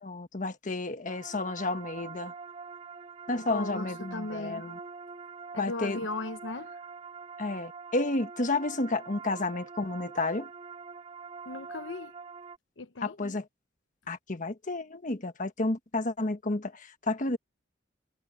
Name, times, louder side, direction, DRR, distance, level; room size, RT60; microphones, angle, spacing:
voice 1, 0.0-2.3 3.3-4.8 5.6-6.0 7.4-10.5 13.0-13.4 14.1-17.4, left 2 dB, 45° left, 1.4 m, -31 dB
sound 1, 1.1-12.6, right 5 dB, 35° right, 2.6 m, -44 dB
voice 2, 3.5-4.6 5.5-6.8 11.4-12.1 12.8-13.4, left 2 dB, 85° left, 0.9 m, -37 dB
head